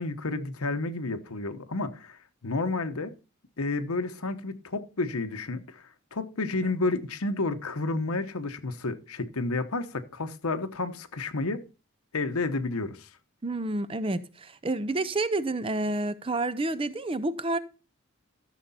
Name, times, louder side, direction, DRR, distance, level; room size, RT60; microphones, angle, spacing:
voice 1, 0.0-3.1 3.6-5.8 6.1-11.6 12.1-13.1, left 3 dB, 90° left, 1.1 m, -31 dB
voice 2, 13.4-17.6, right 2 dB, 25° right, 0.5 m, -29 dB
13.5 x 6.7 x 4.2 m
head